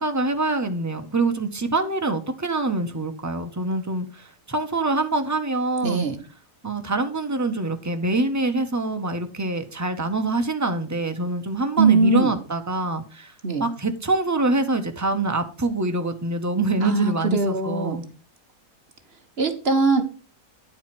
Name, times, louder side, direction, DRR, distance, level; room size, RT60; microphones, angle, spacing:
voice 1, 0.0-6.1 6.6-13.3 13.6-18.0, right 2 dB, 15° right, 0.6 m, -25 dB
voice 2, 5.8-6.2 11.8-12.3 13.4-13.7 16.8-18.0 19.4-20.0, right 4 dB, 45° right, 1.3 m, -21 dB
9.9 x 4.6 x 5.9 m
omnidirectional pair, 1.6 m